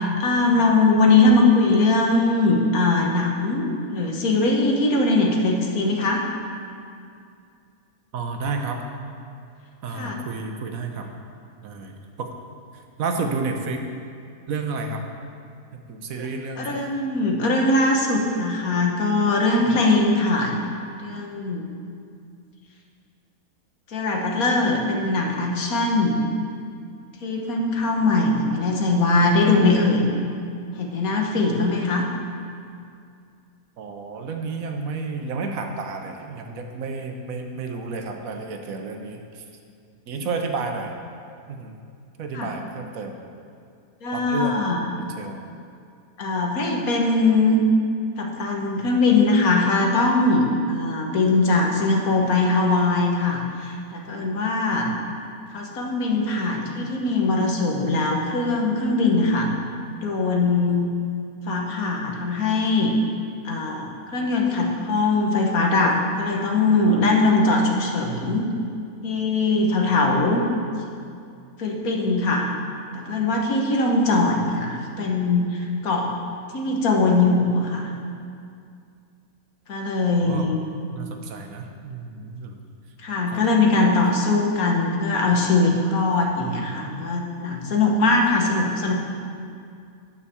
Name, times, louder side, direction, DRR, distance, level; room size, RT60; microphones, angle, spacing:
voice 1, 0.0-6.2 9.9-10.2 16.6-20.5 21.0-21.7 23.9-26.2 27.2-30.0 30.8-32.1 42.3-42.5 44.0-44.8 46.2-47.6 48.2-54.9 55.5-59.5 60.0-60.9 61.5-62.9 63.4-68.5 69.0-70.4 71.6-72.5 72.9-76.1 76.5-77.9 79.7-80.6 83.0-88.9, left 3 dB, 80° left, 0 dB, 1.7 m, -21 dB
voice 2, 8.1-8.8 9.8-11.1 11.6-12.3 12.7-13.8 14.5-15.0 15.7-16.8 33.8-39.4 40.1-40.9 41.5-41.8 42.2-43.2 44.1-44.7 45.2-45.4 80.2-80.5 80.9-82.6 83.3-83.4 83.7-83.8, right 4 dB, 70° right, 4 dB, 1.3 m, -31 dB
9.7 x 5.7 x 7.0 m, 2.4 s
omnidirectional pair, 1.5 m